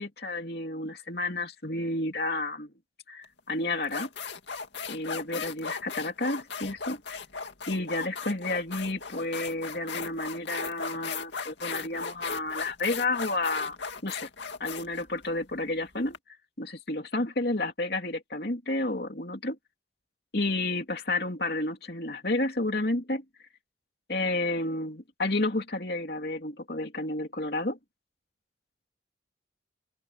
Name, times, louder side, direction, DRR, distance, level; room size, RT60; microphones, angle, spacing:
voice 1, 0.0-2.7 3.1-4.1 4.9-7.0 7.7-13.8 14.0-14.3 14.6-16.2 16.6-19.6 20.3-23.2 24.1-27.8, left 2 dB, 55° left, 3.0 m, -31 dB
sound 1, 3.2-3.4 3.8-16.2, left 5 dB, 75° left, 2.3 m, -37 dB
open air
head